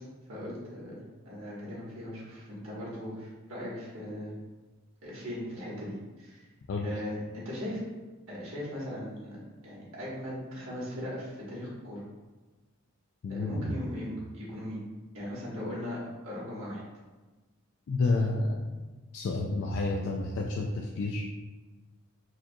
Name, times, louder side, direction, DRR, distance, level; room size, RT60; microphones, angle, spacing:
voice 1, 0.3-4.3 5.0-6.4 6.8-7.8 8.3-12.0 13.3-14.8 15.1-16.8, equal, 65° right, -6 dB, 1.4 m, -38 dB
voice 2, 13.2-13.7 17.9-18.6 19.1-21.2, left 3 dB, 60° left, 0 dB, 0.3 m, -30 dB
4.6 x 2.9 x 2.3 m, 1.2 s
head